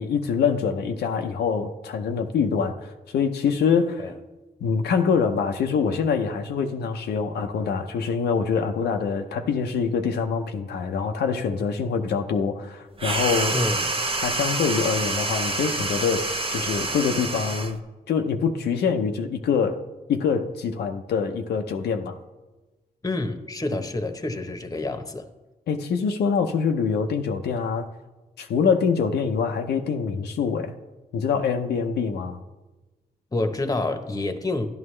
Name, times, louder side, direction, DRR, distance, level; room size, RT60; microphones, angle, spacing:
voice 1, 0.0-4.1 4.6-13.6 14.2-17.8 18.1-22.2 25.7-27.9 28.4-30.7 31.1-32.4, left 6 dB, 85° left, 0.6 m, -25 dB
sound 1, 13.0-17.8, right 3 dB, 35° right, 0.9 m, -27 dB
voice 2, 13.5-13.9 23.0-25.3 33.3-34.7, left 2 dB, 20° left, 0.9 m, -28 dB
11.0 x 10.5 x 3.2 m
cardioid pair, 65°, 17 cm